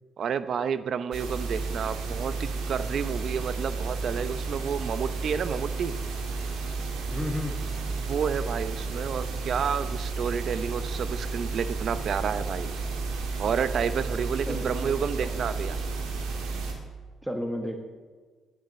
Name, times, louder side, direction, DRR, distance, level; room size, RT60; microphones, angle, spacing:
voice 1, 0.2-5.9 8.0-12.7 13.4-15.8, right 7 dB, 60° right, 14 dB, 0.7 m, -30 dB
sound 1, 1.1-16.7, right 4 dB, 90° right, 2.1 m, -32 dB
voice 2, 7.1-7.6 14.5-15.4 17.2-17.8, left 1 dB, 5° right, 4 dB, 1.5 m, -33 dB
11.0 x 10.5 x 6.8 m, 1.5 s
cardioid pair, 90°, 0 cm